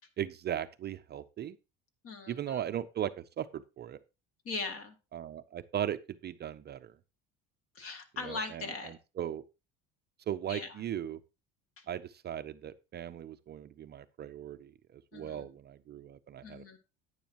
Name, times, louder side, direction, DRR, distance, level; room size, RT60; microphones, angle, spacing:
voice 1, 0.2-1.6 2.3-4.0 5.1-6.9 8.2-8.6 9.2-9.4 10.3-11.2 11.9-16.8, right 10 dB, 35° right, 11 dB, 0.5 m, -38 dB
voice 2, 2.0-2.6 4.4-5.0 7.7-8.9 10.5-10.9 11.8-11.9 15.1-15.5 16.4-16.8, left 4 dB, 50° left, 6 dB, 2.1 m, -40 dB
10.0 x 9.6 x 2.9 m, 0.28 s
cardioid pair, 120°, 29 cm